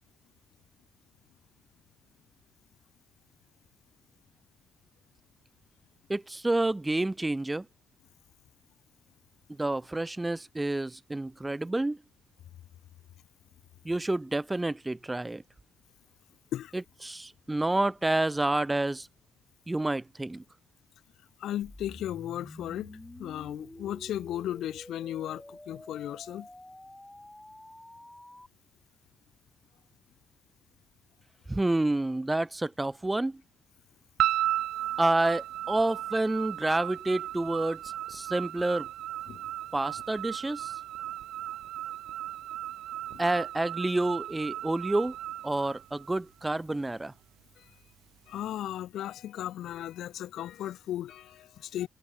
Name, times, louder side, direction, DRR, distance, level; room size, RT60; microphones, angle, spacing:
voice 1, 6.1-7.6 9.5-12.0 13.8-15.4 17.0-19.1 19.7-20.4 31.5-33.4 35.0-37.8 38.1-38.9 39.7-40.7 43.2-45.2 45.4-47.1, right 2 dB, 15° right, 1.5 m, -29 dB
voice 2, 21.4-26.5 39.3-39.4 43.1-43.2 47.6-47.7 48.3-51.9, left 12 dB, 80° left, 0.7 m, -36 dB
sound 1, 21.6-28.5, left 1 dB, 10° left, 1.9 m, -48 dB
sound 2, 34.2-46.5, right 13 dB, 85° right, 1.9 m, -35 dB
cardioid pair, 95°, 0 cm